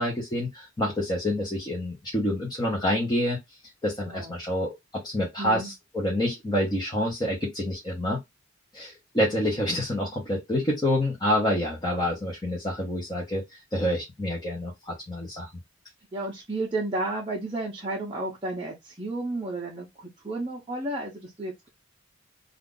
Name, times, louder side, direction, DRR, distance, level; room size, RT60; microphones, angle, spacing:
voice 1, 0.0-3.4 3.8-8.2 8.7-13.4 13.7-15.5, left 1 dB, 20° left, 0.8 m, -27 dB
voice 2, 4.0-4.4 5.4-5.7 11.9-12.1 16.1-21.7, right 2 dB, 20° right, 0.6 m, -32 dB
2.5 x 2.5 x 3.6 m
head